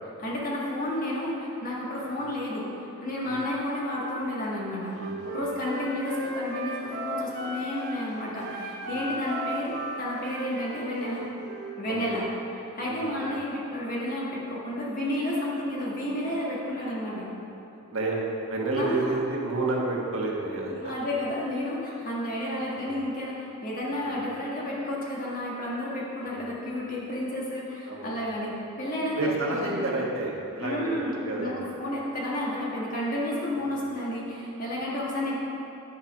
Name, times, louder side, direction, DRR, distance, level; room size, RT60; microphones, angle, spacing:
voice 1, 0.2-11.2 11.8-12.2 12.7-17.3 18.8-19.2 20.7-29.8 30.6-35.4, left 1 dB, 40° left, -5 dB, 1.7 m, -31 dB
Wind instrument woodwind instrument, 4.9-8.0 8.4-11.8, right 1 dB, 50° right, 2.1 m, -35 dB
voice 2, 4.9-5.4 8.8-9.0 11.9-12.1 12.8-13.3 17.9-20.9 22.7-22.9 24.0-24.2 26.2-26.5 27.9-28.1 29.1-30.8 31.1-31.6 33.5-33.7, right 2 dB, 70° right, -3 dB, 1.3 m, -30 dB
9.5 x 4.5 x 6.0 m, 2.9 s
head